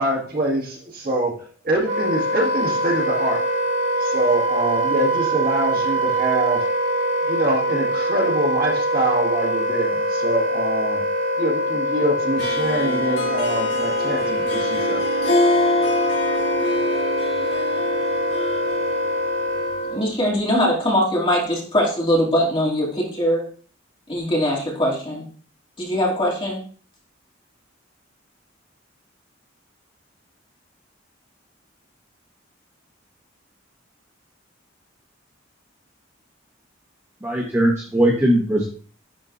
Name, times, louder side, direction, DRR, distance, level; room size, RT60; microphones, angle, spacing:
voice 1, 0.0-1.3 1.6-3.4 4.0-6.7 7.3-11.0 11.4-15.0, right 1 dB, 50° right, -2 dB, 1.9 m, -24 dB
Wind instrument woodwind instrument, 1.8-20.1, equal, 70° right, 1.9 m, -23 dB
Harp, 12.4-20.1, left 2 dB, 60° left, 1.8 m, -26 dB
voice 2, 19.9-23.4 24.1-25.3 25.8-26.6, equal, 25° left, -4 dB, 2.5 m, -21 dB
voice 3, 37.2-38.7, right 1 dB, 15° right, -3 dB, 1.1 m, -19 dB
11.0 x 4.5 x 2.6 m, 0.43 s
head